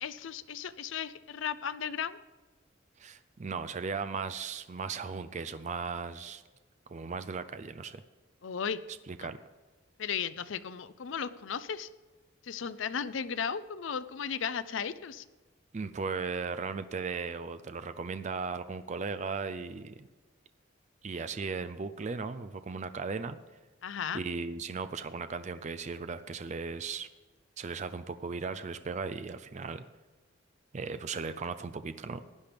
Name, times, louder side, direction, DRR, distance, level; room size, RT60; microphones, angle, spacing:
voice 1, 0.0-2.2 8.4-8.8 9.2-9.3 10.0-11.9 12.4-15.2 23.8-24.2, left 7 dB, 75° left, 15 dB, 0.5 m, -35 dB
voice 2, 3.0-6.4 6.9-8.0 9.1-9.4 15.7-20.1 21.0-23.4 24.1-27.1 27.6-29.8 30.7-32.2, right 4 dB, 35° right, 11 dB, 0.4 m, -37 dB
16.0 x 9.9 x 3.5 m, 1.3 s
head